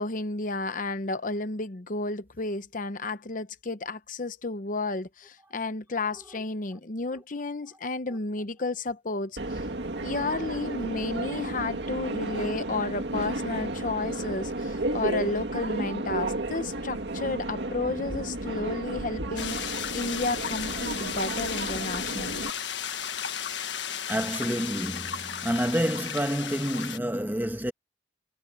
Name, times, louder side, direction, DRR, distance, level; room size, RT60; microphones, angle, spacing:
voice 1, 0.0-9.6 10.0-22.5, left 3 dB, 50° left, 0.9 m, -32 dB
Subway metro underground, 9.4-22.5, right 2 dB, 75° right, 2.1 m, -33 dB
sound 1, 19.4-27.0, left 8 dB, 90° left, 1.5 m, -34 dB
voice 2, 24.1-27.7, equal, 10° right, 1.3 m, -28 dB
head